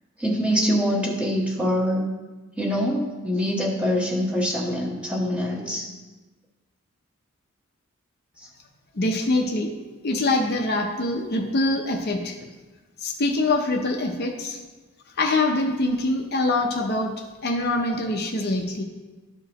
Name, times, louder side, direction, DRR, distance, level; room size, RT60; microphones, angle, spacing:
voice 1, 0.2-2.0 2.6-5.9, equal, 5° right, -2 dB, 1.0 m, -24 dB
voice 2, 9.0-9.7 10.0-12.4 13.0-14.6 15.2-17.1 17.4-18.8, left 2 dB, 45° left, 2 dB, 0.6 m, -24 dB
12.5 x 4.8 x 2.9 m, 1.2 s
head